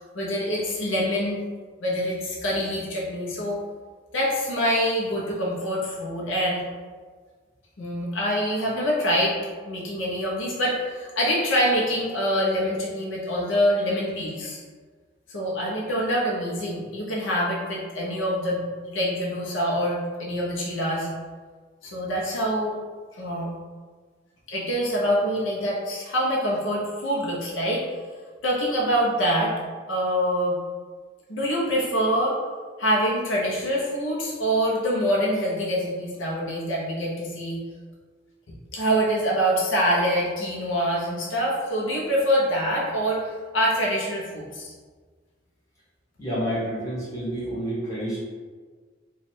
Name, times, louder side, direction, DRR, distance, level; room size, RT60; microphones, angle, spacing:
voice 1, 0.1-1.4 1.8-3.6 4.1-6.6 7.8-9.4 9.6-14.6 15.3-18.6 18.9-21.1 21.8-22.8 23.2-23.5 24.5-27.8 28.4-29.5 29.9-30.6 31.3-32.4 32.8-37.6 38.7-44.7, equal, 75° left, -4 dB, 0.8 m, -25 dB
voice 2, 46.2-48.2, equal, 15° left, -9 dB, 1.2 m, -29 dB
3.1 x 2.4 x 4.2 m, 1.5 s
head